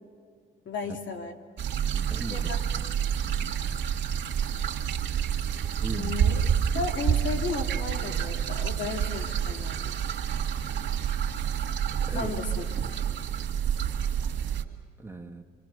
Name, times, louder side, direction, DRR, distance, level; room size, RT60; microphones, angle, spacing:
voice 1, 0.6-1.3 2.3-2.6 5.9-6.4 6.7-9.9 12.1-12.6, left 4 dB, 70° left, 3 dB, 2.7 m, -34 dB
sound 1, 1.6-14.6, right 8 dB, 70° right, 2.2 m, -28 dB
voice 2, 1.9-2.5 2.8-2.9 3.2-3.5 5.8-6.3 12.0-12.3 15.0-15.4, right 3 dB, 10° right, 2 dB, 2.1 m, -39 dB
26.0 x 25.0 x 6.8 m, 2.3 s
cardioid pair, 90°, 20 cm